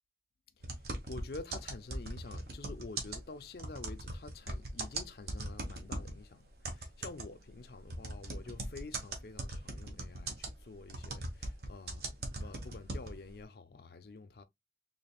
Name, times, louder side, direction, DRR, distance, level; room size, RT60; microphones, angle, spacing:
voice 1, 0.6-14.4, left 3 dB, 60° left, 0.5 m, -49 dB
sound 1, 0.6-6.2 6.6-13.3, right 2 dB, 60° right, 1.1 m, -40 dB
3.5 x 3.4 x 2.3 m
head